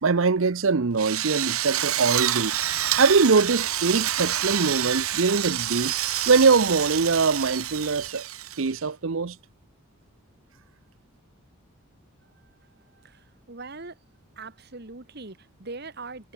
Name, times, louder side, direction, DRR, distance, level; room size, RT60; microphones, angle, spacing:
voice 1, 0.0-2.6 3.0-5.9 6.3-8.2 8.6-9.4, right 4 dB, 65° right, 0.7 m, -22 dB
Idling / Accelerating revving vroom, 1.0-8.1, left 2 dB, 55° left, 7.3 m, -52 dB
Drill, 1.0-8.8, right 12 dB, 90° right, 2.6 m, -28 dB
voice 2, 12.9-14.0 14.4-16.3, right 3 dB, 50° right, 1.6 m, -41 dB
head